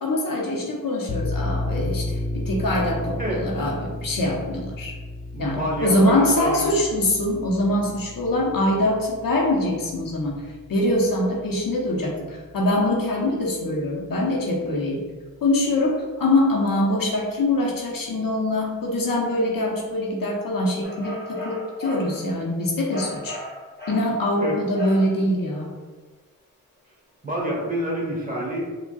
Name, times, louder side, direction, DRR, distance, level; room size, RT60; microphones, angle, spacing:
voice 1, 0.0-4.9 5.4-15.1 15.4-23.4 23.9-25.7, left 1 dB, 65° left, -2 dB, 0.9 m, -23 dB
sound 1, 1.1-12.4, left 1 dB, 45° left, 1.3 m, -33 dB
voice 2, 5.3-6.7 24.4-24.6 27.2-28.7, equal, 25° right, -4 dB, 1.3 m, -28 dB
sound 2, 20.8-22.2 22.9-24.1 24.7-25.2, left 1 dB, 30° left, 1.3 m, -36 dB
4.6 x 2.4 x 2.3 m, 1.4 s
cardioid pair, 45°, 36 cm